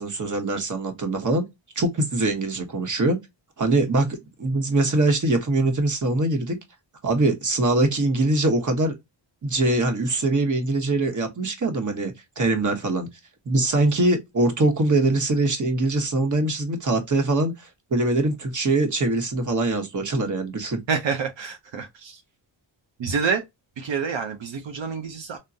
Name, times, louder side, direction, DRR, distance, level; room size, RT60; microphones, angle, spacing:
voice 1, 0.0-1.4 1.8-3.2 3.6-6.6 7.0-8.9 9.4-13.1 13.5-20.8, right 2 dB, 40° right, 1.0 m, -23 dB
voice 2, 20.9-22.2 23.0-23.4 23.8-25.4, right 5 dB, 75° right, 0.6 m, -27 dB
3.6 x 2.0 x 2.5 m
wide cardioid pair, 95°, 45 cm